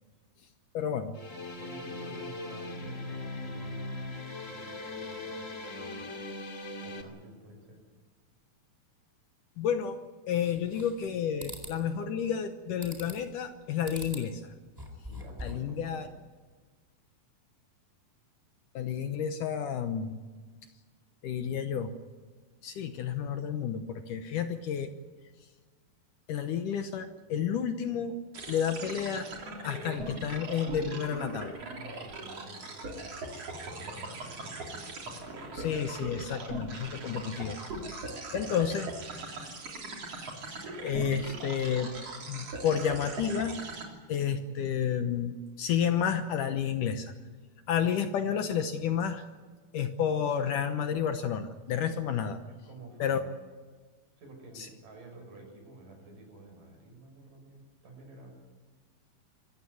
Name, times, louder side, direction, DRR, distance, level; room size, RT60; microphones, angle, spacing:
voice 1, 0.7-1.2 9.6-10.0 10.3-14.4 15.4-16.1 18.7-20.2 21.2-21.9 22.6-24.9 26.3-28.2 28.5-29.3 29.6-31.6 35.5-37.6 38.3-38.9 40.5-41.9 42.3-43.6 44.1-47.1 47.7-49.2 49.7-52.4 53.0-53.2, left 8 dB, 70° left, 8 dB, 2.3 m, -31 dB
sound 1, 1.1-7.0, left 2 dB, 25° left, 2.0 m, -39 dB
voice 2, 1.6-4.0 4.5-6.1 6.8-7.8 15.1-16.1 31.6-34.6 52.5-53.3 54.2-58.3, right 2 dB, 60° right, 3 dB, 7.6 m, -50 dB
sound 2, 10.4-11.1 11.4-11.8 12.8-13.3 13.8-14.3 14.7-15.7, left 1 dB, 5° right, 3.7 m, -43 dB
sound 3, 28.3-43.8, right 2 dB, 40° right, 4.2 m, -40 dB
25.5 x 15.0 x 9.5 m, 1.4 s
omnidirectional pair, 4.3 m